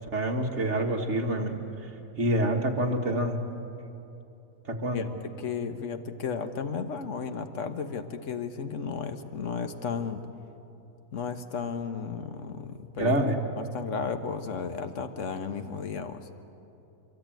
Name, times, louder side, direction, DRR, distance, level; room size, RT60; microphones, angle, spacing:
voice 1, 0.1-1.9 2.2-3.4 4.7-5.1 13.0-13.4, right 1 dB, 50° right, 2 dB, 2.0 m, -27 dB
voice 2, 4.9-10.2 11.1-13.2 13.6-16.3, left 6 dB, 55° left, 8 dB, 1.5 m, -34 dB
24.5 x 22.5 x 9.1 m, 2.9 s
omnidirectional pair, 1.6 m